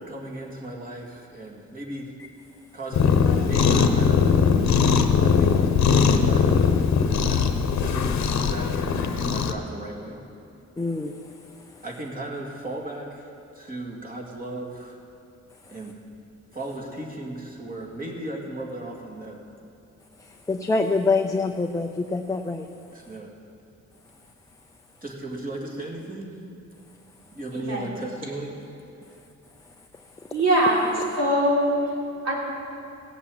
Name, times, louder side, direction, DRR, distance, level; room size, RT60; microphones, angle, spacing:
voice 1, 0.1-2.1 2.7-6.6 7.2-7.4 7.8-10.2 11.8-13.3 13.5-15.0 15.7-16.0 16.5-19.4 22.9-23.3 25.0-26.4 27.3-28.6, right 1 dB, 30° right, -1 dB, 2.3 m, -36 dB
Cat, 2.9-9.5, left 6 dB, 65° left, 1.0 m, -20 dB
voice 2, 10.8-11.8 20.2-22.7 30.2-30.3, left 3 dB, 10° left, 4 dB, 0.5 m, -26 dB
voice 3, 27.5-27.9 30.3-30.9 31.2-31.7 32.2-32.3, right 1 dB, 60° right, -3 dB, 3.6 m, -22 dB
17.0 x 8.4 x 7.7 m, 2.6 s
cardioid pair, 130°, 30 cm